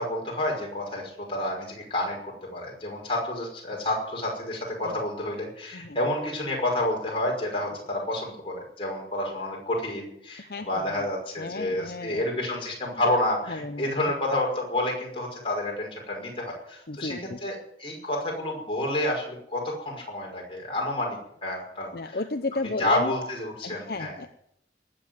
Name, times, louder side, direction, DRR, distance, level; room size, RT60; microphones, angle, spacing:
voice 1, 0.0-22.2 22.8-24.1, left 1 dB, 30° left, -2 dB, 5.6 m, -29 dB
voice 2, 5.7-6.1 10.5-11.1 11.4-12.3 13.5-13.9 16.9-17.4 21.9-23.1 23.6-24.3, left 2 dB, 55° left, 8 dB, 0.8 m, -34 dB
19.0 x 7.9 x 9.4 m, 0.75 s
head